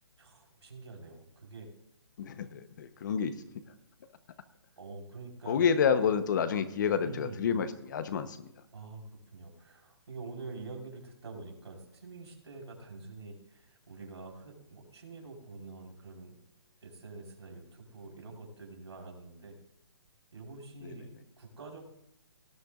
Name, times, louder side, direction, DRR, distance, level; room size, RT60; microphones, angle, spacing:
voice 1, 0.2-1.7 4.8-5.6 7.0-7.5 8.7-16.4 16.8-19.6 20.3-21.8, right 3 dB, 85° right, 0 dB, 4.4 m, -46 dB
voice 2, 2.2-3.4 5.5-8.5, left 7 dB, 45° left, 11 dB, 1.0 m, -29 dB
18.5 x 11.5 x 2.5 m, 0.85 s
hypercardioid pair, 155°, 14 cm